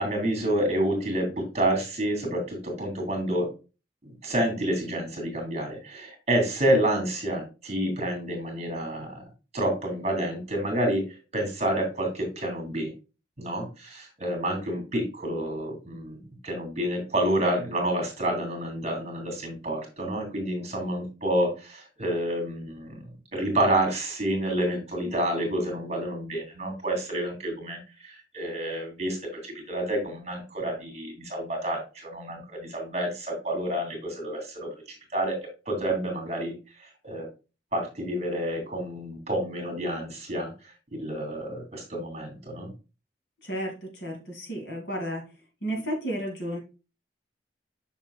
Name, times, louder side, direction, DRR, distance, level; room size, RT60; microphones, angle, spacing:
voice 1, 0.0-3.5 4.0-9.2 9.5-12.9 13.4-16.2 16.4-23.0 23.3-29.2 29.4-34.7 35.1-35.4 35.7-36.5 36.8-37.3 37.7-40.5 40.9-42.7, right 1 dB, 35° right, 3 dB, 2.5 m, -29 dB
voice 2, 43.4-45.2 45.6-46.6, equal, 65° left, 2 dB, 2.2 m, -32 dB
6.7 x 6.4 x 2.3 m, 0.30 s
head